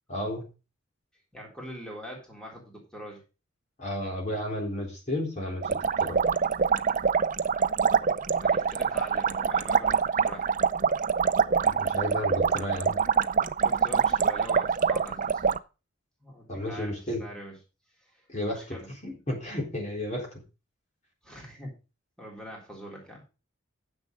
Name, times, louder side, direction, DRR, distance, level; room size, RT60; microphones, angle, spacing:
voice 1, 0.1-0.5 3.8-6.2 11.6-13.0 16.5-17.2 18.3-18.8 19.0-20.3, left 1 dB, 35° left, 0 dB, 3.8 m, -32 dB
voice 2, 1.3-3.2 8.4-10.6 13.6-15.5 16.2-17.6 18.1-18.2 18.5-18.9 21.2-21.7 22.2-23.2, equal, 5° left, -2 dB, 3.7 m, -43 dB
sound 1, 5.6-15.6, right 6 dB, 40° right, 0.5 m, -25 dB
9.8 x 7.2 x 5.3 m, 0.31 s
head